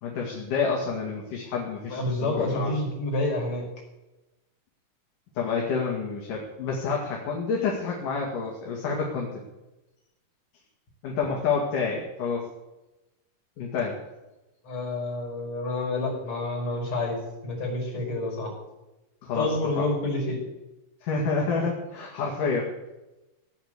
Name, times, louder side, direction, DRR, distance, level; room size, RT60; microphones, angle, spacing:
voice 1, 0.0-2.7 5.4-9.3 11.0-12.5 13.6-14.0 19.2-19.9 21.0-22.7, left 5 dB, 70° left, -2 dB, 3.7 m, -28 dB
voice 2, 1.9-3.6 14.6-17.2 17.4-18.5 19.4-20.4, left 2 dB, 50° left, -1 dB, 6.3 m, -28 dB
17.5 x 9.3 x 8.1 m, 1.0 s
omnidirectional pair, 3.9 m